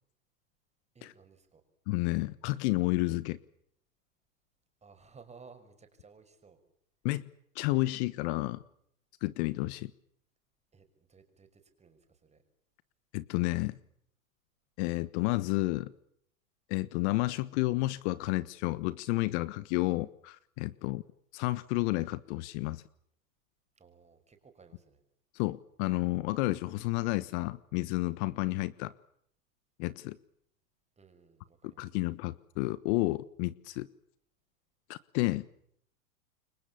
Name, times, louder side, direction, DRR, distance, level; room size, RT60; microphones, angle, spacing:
voice 1, 0.9-1.6 4.8-6.6 10.7-12.4 20.8-21.0 23.8-25.0 31.0-31.9, right 5 dB, 15° right, 7 dB, 5.9 m, -57 dB
voice 2, 1.9-3.4 7.0-7.3 7.5-8.6 9.2-9.9 13.1-13.8 14.8-15.9 16.7-21.0 21.3-22.8 25.3-28.9 29.8-30.2 31.8-33.9 34.9-35.4, left 20 dB, 50° left, 17 dB, 1.3 m, -31 dB
29.0 x 23.5 x 7.1 m, 0.70 s
hypercardioid pair, 120°, 43 cm